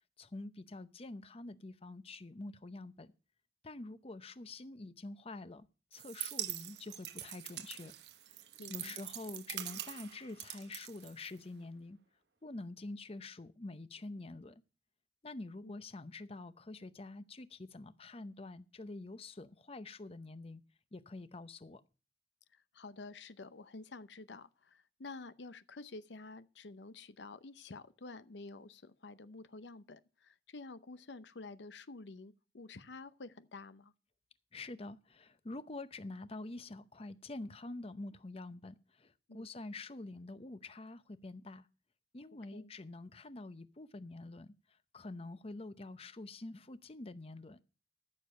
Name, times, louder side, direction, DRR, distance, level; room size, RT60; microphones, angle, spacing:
voice 1, 0.2-3.1 3.6-7.9 8.3-8.4 8.7-12.0 12.4-14.6 15.2-20.6 20.9-21.8 34.5-41.7 42.1-47.6, left 2 dB, 35° left, 0.7 m, -47 dB
sound 1, 5.9-11.6, right 12 dB, 70° right, 0.9 m, -44 dB
voice 2, 8.6-9.0 15.6-15.8 22.5-33.9 39.3-39.5 42.5-42.7, left 3 dB, 90° left, 0.7 m, -50 dB
13.5 x 7.0 x 6.4 m
head